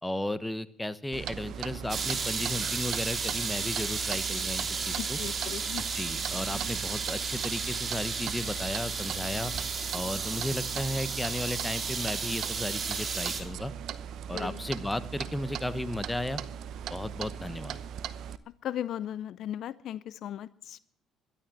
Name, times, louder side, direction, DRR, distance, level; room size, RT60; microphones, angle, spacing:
voice 1, 0.0-5.2 5.8-9.5 9.9-13.7 14.3-16.4 16.9-17.8, left 1 dB, 10° left, 15 dB, 1.1 m, -34 dB
Clock, 1.1-18.4, right 8 dB, 65° right, 0.8 m, -39 dB
sound 1, 1.9-13.4, right 5 dB, 40° right, 3.6 m, -33 dB
voice 2, 5.0-5.9 14.3-14.6 18.6-20.8, left 11 dB, 65° left, 19 dB, 0.5 m, -37 dB
12.5 x 11.5 x 7.5 m, 0.66 s
supercardioid pair, 70°, 0 cm